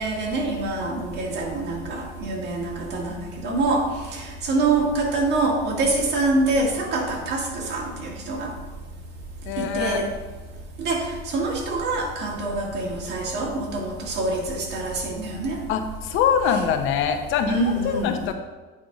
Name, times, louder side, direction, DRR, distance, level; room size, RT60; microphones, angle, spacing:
voice 1, 0.0-3.8 4.1-8.5 9.6-10.0 10.8-15.6 17.5-18.1, right 2 dB, 55° right, -1 dB, 1.8 m, -25 dB
voice 2, 9.5-10.1 15.7-18.3, left 7 dB, 70° left, 7 dB, 0.8 m, -24 dB
8.5 x 5.1 x 3.9 m, 1.3 s
cardioid pair, 150°, 21 cm